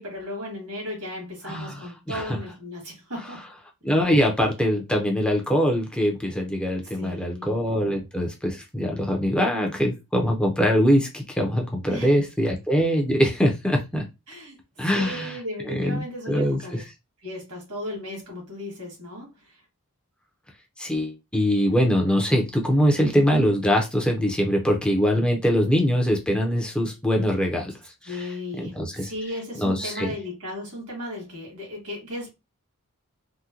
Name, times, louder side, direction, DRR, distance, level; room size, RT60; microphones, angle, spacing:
voice 1, 0.0-3.5 6.9-7.5 11.9-12.2 14.3-16.8 17.2-19.6 28.1-32.3, left 1 dB, 75° right, 1.9 m, -36 dB
voice 2, 1.4-2.4 3.8-14.0 14.8-15.4 15.6-16.8 20.8-29.1 29.6-30.1, equal, 5° left, 0.6 m, -23 dB
3.6 x 2.2 x 2.8 m
head